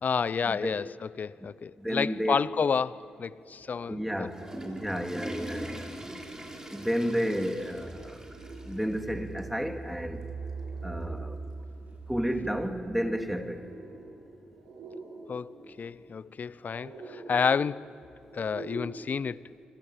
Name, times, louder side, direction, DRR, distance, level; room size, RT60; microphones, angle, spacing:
voice 1, 0.0-4.3 5.7-5.8 15.3-17.9 18.3-19.4, left 6 dB, 50° left, 0.6 m, -30 dB
voice 2, 1.8-2.4 3.9-5.9 6.7-8.2 8.6-10.2 10.8-11.4 12.1-13.6, equal, ahead, 3.0 m, -32 dB
sound 1, 2.9-19.0, right 2 dB, 85° right, 6.2 m, -48 dB
Water / Toilet flush, 4.1-9.1 9.4-9.5 10.2-10.3 11.6-11.7, right 1 dB, 15° right, 5.4 m, -42 dB
Engine, 7.2-13.1, right 4 dB, 50° right, 6.6 m, -42 dB
28.0 x 25.5 x 7.7 m
hypercardioid pair, 40°, 3 cm